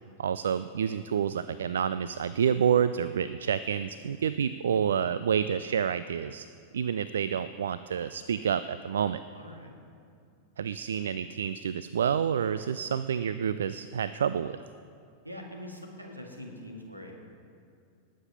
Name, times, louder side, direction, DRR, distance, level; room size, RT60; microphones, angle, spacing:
voice 1, 0.2-6.5 6.7-9.2 10.6-14.6, right 8 dB, 65° right, 14 dB, 0.3 m, -28 dB
voice 2, 9.3-9.7 15.2-17.1, left 1 dB, 85° right, 1 dB, 1.9 m, -43 dB
19.5 x 7.4 x 5.7 m, 2.4 s
figure-of-eight pair, 90°, 0 cm